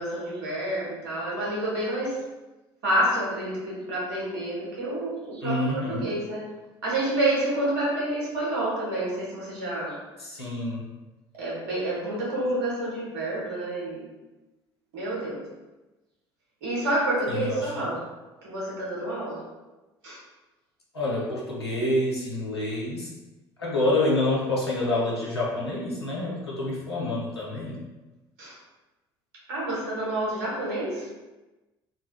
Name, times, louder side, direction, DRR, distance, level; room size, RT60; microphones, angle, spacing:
voice 1, 0.0-2.2 2.8-6.5 6.8-10.0 11.4-14.1 14.9-15.4 16.6-18.0 18.4-19.4 20.0-20.2 28.4-28.5 29.5-31.1, right 1 dB, 70° right, -5 dB, 1.2 m, -28 dB
voice 2, 5.4-6.1 10.2-10.8 17.3-17.8 20.9-23.1 23.6-27.8, left 2 dB, 90° left, -5 dB, 0.7 m, -27 dB
3.8 x 2.2 x 2.3 m, 1.1 s
figure-of-eight pair, 60°, 13 cm